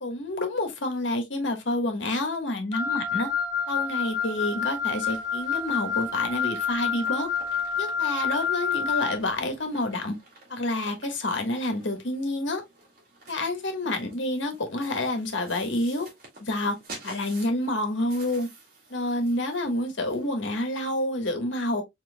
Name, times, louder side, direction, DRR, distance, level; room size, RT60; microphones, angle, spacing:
voice 1, 0.0-3.3 3.7-7.3 7.8-10.2 10.5-12.6 13.3-16.1 16.4-16.8 17.0-18.5 18.9-21.8, left 1 dB, 80° left, 1.5 m, -28 dB
Wind instrument woodwind instrument, 2.7-9.2, left 6 dB, 20° left, 0.9 m, -28 dB
sound 1, 5.1-21.1, right 2 dB, 50° right, 2.3 m, -50 dB
4.6 x 4.2 x 2.2 m
head